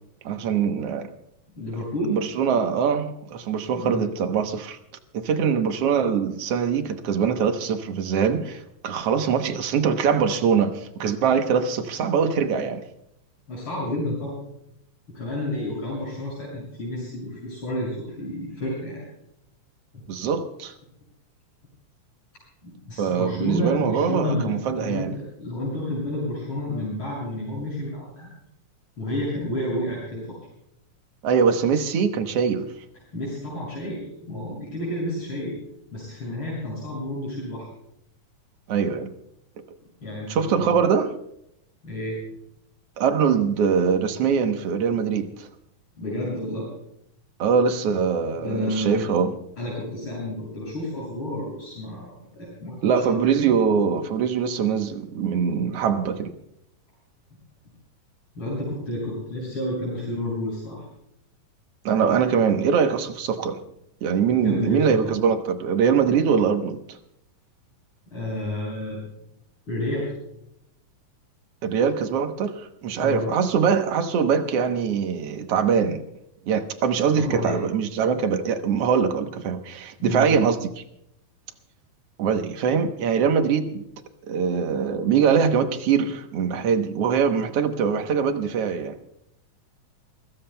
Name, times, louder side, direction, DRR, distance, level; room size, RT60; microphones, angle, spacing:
voice 1, 0.3-1.1 2.1-4.8 5.1-12.9 20.1-20.7 23.0-25.2 31.2-32.7 38.7-39.1 40.3-41.1 43.0-45.5 47.4-49.4 52.8-56.3 61.9-63.7 64.0-66.8 71.6-76.0 76.5-80.8 82.2-83.8 84.3-89.0, right 6 dB, 65° right, 1.6 m, -23 dB
voice 2, 1.5-2.2 3.8-4.0 13.5-14.4 15.1-19.0 19.9-20.0 22.6-28.3 29.0-30.4 33.1-35.5 35.9-37.7 40.0-40.7 41.8-42.3 46.0-46.7 48.3-49.1 49.6-53.5 58.4-60.9 64.3-65.2 68.1-69.0 69.7-70.1 72.9-73.4 77.2-77.6 80.0-80.3, left 1 dB, 35° left, 7.5 m, -30 dB
29.0 x 16.5 x 2.2 m
omnidirectional pair, 3.9 m